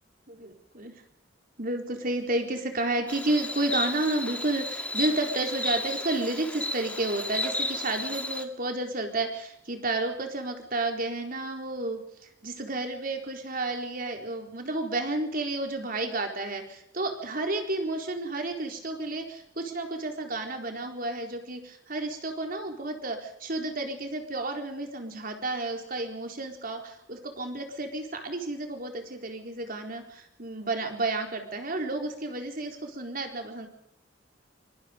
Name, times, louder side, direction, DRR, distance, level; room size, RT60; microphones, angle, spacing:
voice 1, 0.3-1.0 1.6-12.0 12.4-33.7, right 2 dB, 50° right, 4 dB, 4.2 m, -31 dB
Insect, 3.1-8.4, left 1 dB, 10° left, 2.1 m, -33 dB
24.5 x 23.5 x 5.3 m, 0.74 s
head